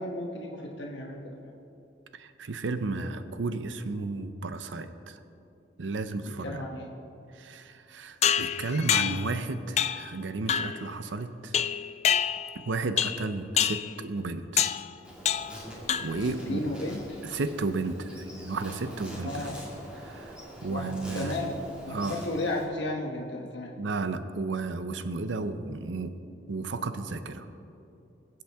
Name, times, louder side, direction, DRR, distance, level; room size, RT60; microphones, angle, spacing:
voice 1, 0.0-1.5 6.2-6.9 16.3-17.2 19.2-19.6 20.7-21.5 21.8-23.7, left 1 dB, 75° left, 0 dB, 1.1 m, -34 dB
voice 2, 2.1-5.2 5.8-6.6 7.3-11.6 12.5-14.6 16.0-16.6 17.2-19.5 20.0-20.4 20.6-21.4 21.9-22.2 23.8-26.1 26.5-27.5, right 3 dB, 80° right, 10 dB, 0.6 m, -33 dB
sound 1, 8.2-9.3 9.8-10.1 10.5-10.8 11.5-12.6 13.0-13.3 13.6-13.9 14.6-14.9 15.3-15.6 15.9-16.3, left 9 dB, 35° left, 0.3 m, -27 dB
Insect, 15.0-22.6, equal, 5° right, 2.1 m, -44 dB
22.0 x 7.7 x 3.5 m, 2.7 s
head